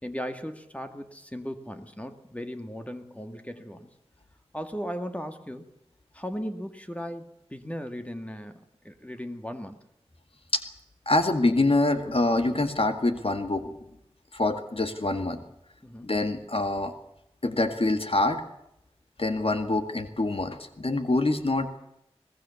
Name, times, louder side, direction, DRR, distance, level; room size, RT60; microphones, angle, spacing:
voice 1, 0.0-3.9 4.5-5.7 6.1-9.8 15.8-16.1, equal, 15° left, 7 dB, 2.0 m, -37 dB
voice 2, 11.1-13.7 14.3-15.4 16.0-16.9 17.4-18.4 19.2-21.8, left 2 dB, 65° left, 8 dB, 1.9 m, -25 dB
22.5 x 19.0 x 7.1 m, 0.83 s
wide cardioid pair, 55°, 11 cm